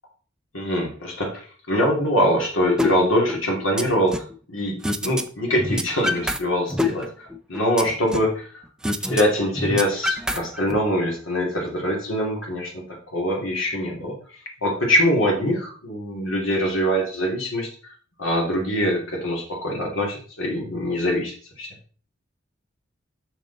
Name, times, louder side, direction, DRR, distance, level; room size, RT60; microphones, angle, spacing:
voice 1, 0.5-8.6 9.0-14.1 14.6-17.7 18.2-21.7, equal, 85° left, 1 dB, 2.7 m, -23 dB
sound 1, 2.8-2.9 3.3-4.3 4.8-5.2 5.5-6.4 6.7-8.3 8.8-9.2 9.5-10.8, left 1 dB, 5° right, 0.5 m, -25 dB
6.5 x 6.4 x 4.1 m, 0.43 s
head